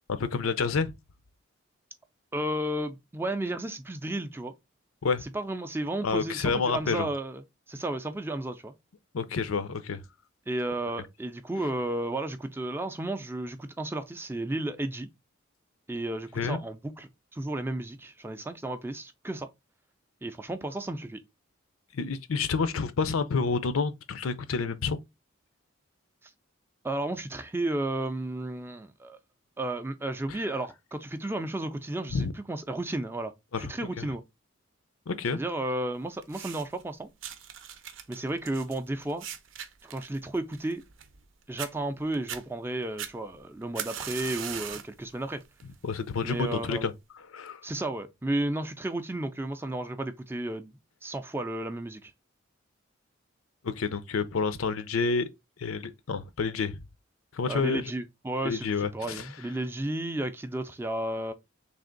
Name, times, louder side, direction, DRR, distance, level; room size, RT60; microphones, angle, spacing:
voice 1, 0.2-0.9 5.0-5.2 6.0-7.1 9.1-10.0 16.4-16.6 21.9-25.0 32.1-32.3 33.5-34.1 35.1-35.4 45.8-46.9 47.3-47.6 53.6-55.3 55.6-56.8 57.3-57.9 58.4-59.3, left 5 dB, 90° left, 0.5 m, -29 dB
voice 2, 2.3-4.5 5.2-7.4 7.7-8.7 10.5-15.1 15.9-19.5 20.2-21.2 26.8-29.2 29.6-33.3 33.6-34.2 35.3-37.1 38.1-39.3 39.8-40.8 41.5-45.4 46.2-46.9 47.6-52.1 57.5-61.3, right 1 dB, 10° right, 0.4 m, -33 dB
sound 1, 36.2-36.8 37.2-41.3 41.6-41.7 42.1-42.4 43.0-45.0 45.4-45.8 46.5-46.6, right 9 dB, 70° right, 0.6 m, -39 dB
3.4 x 2.8 x 3.8 m
head